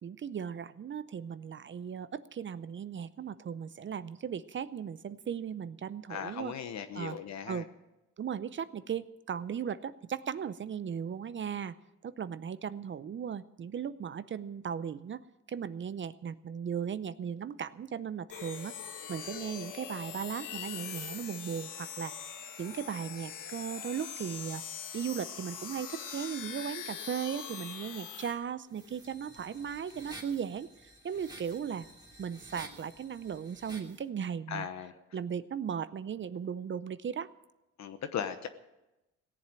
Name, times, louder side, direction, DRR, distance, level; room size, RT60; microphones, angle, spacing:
voice 1, 0.0-6.5 6.9-7.2 7.5-7.7 8.2-11.7 12.0-15.2 15.5-18.7 19.1-22.2 22.6-24.6 24.9-31.9 32.2-34.7 35.1-37.3, right 8 dB, 40° right, 15 dB, 0.6 m, -37 dB
voice 2, 6.1-7.6 34.5-34.9 37.8-38.5, left 8 dB, 65° left, 9 dB, 1.1 m, -37 dB
sound 1, 18.3-28.3, left 7 dB, 85° left, 1.6 m, -42 dB
sound 2, 28.7-34.0, right 1 dB, 10° right, 2.7 m, -51 dB
17.5 x 7.5 x 8.9 m, 0.98 s
cardioid pair, 90°, 30 cm